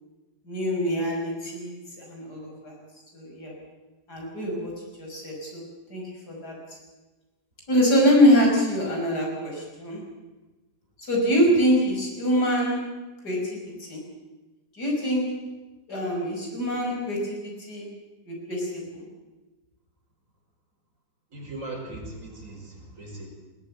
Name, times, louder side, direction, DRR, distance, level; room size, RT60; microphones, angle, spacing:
voice 1, 0.5-2.8 3.1-3.5 4.1-4.7 5.0-5.6 5.9-6.5 7.7-10.0 11.1-12.8 13.2-14.0 14.7-15.2 15.9-17.9 18.3-19.0, equal, 65° left, -1 dB, 6.5 m, -24 dB
voice 2, 21.3-23.3, right 2 dB, 45° right, -1 dB, 5.9 m, -38 dB
20.5 x 17.0 x 8.6 m, 1.2 s
omnidirectional pair, 1.9 m